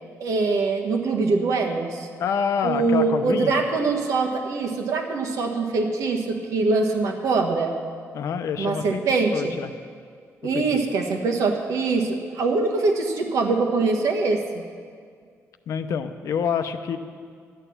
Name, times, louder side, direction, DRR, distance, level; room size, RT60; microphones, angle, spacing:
voice 1, 0.2-2.1 2.6-7.7 8.6-9.5 10.4-14.6, right 3 dB, 85° right, 3 dB, 1.5 m, -23 dB
voice 2, 2.2-3.6 8.1-9.0 9.3-9.7 10.5-10.6 15.7-17.0, left 7 dB, 75° left, 9 dB, 0.7 m, -27 dB
12.5 x 9.1 x 7.1 m, 2.1 s
cardioid pair, 130°, 5 cm